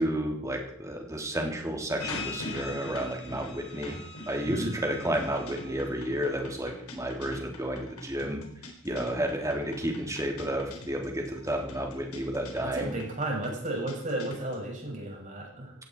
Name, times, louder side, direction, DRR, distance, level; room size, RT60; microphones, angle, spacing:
voice 1, 0.0-8.4 8.8-12.9, right 1 dB, 15° right, 2 dB, 3.2 m, -31 dB
sound 1, 2.0-14.7, left 2 dB, 85° left, 4.1 m, -42 dB
voice 2, 4.5-4.8 12.6-15.7, right 1 dB, 35° right, -2 dB, 7.3 m, -33 dB
17.0 x 16.5 x 4.8 m, 0.64 s
head